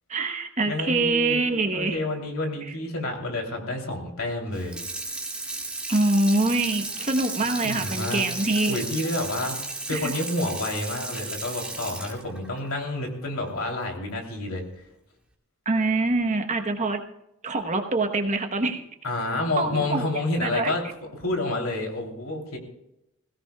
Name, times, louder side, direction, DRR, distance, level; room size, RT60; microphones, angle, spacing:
voice 1, 0.1-2.0 5.9-8.8 9.9-10.1 15.6-17.0 17.4-18.8 19.6-20.1 20.4-20.7, right 2 dB, 35° right, 6 dB, 1.1 m, -24 dB
voice 2, 0.6-1.4 1.7-4.8 7.6-8.2 8.7-9.6 9.9-14.6 19.0-20.8 21.2-22.6, left 2 dB, 75° left, 1 dB, 3.2 m, -29 dB
Water tap faucet / Sink (filling or washing), 4.5-13.7 14.1-14.2, right 2 dB, 5° right, 2.3 m, -34 dB
21.0 x 16.5 x 2.3 m, 0.84 s
head